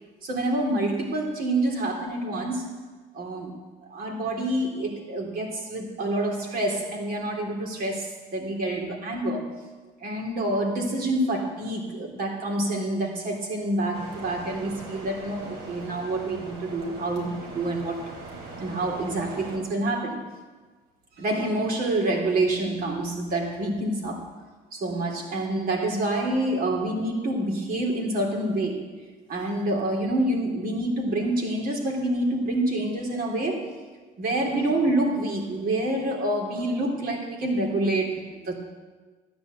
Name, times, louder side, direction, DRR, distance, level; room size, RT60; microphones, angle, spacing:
voice 1, 0.2-2.8 3.1-3.5 3.9-9.5 10.0-18.0 18.6-20.3 21.2-24.2 24.7-28.9 29.3-33.7 34.2-38.6, right 1 dB, 60° right, 1 dB, 3.5 m, -27 dB
sound 1, 13.9-19.6, right 3 dB, 80° right, 3.6 m, -40 dB
13.0 x 9.6 x 8.3 m, 1.3 s
cardioid pair, 110°, 17 cm